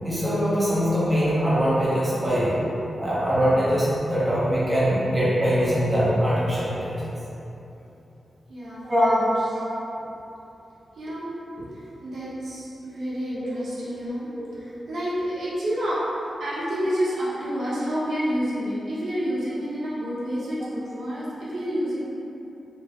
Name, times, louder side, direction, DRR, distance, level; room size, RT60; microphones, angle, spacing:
voice 1, 0.0-2.6 3.0-7.0 8.8-9.2, equal, 15° right, -9 dB, 0.6 m, -22 dB
voice 2, 8.5-9.6 10.9-11.3 11.6-16.0 16.4-22.0, equal, 70° right, -9 dB, 0.9 m, -29 dB
4.4 x 2.0 x 3.0 m, 3.0 s
wide cardioid pair, 175°, 0 cm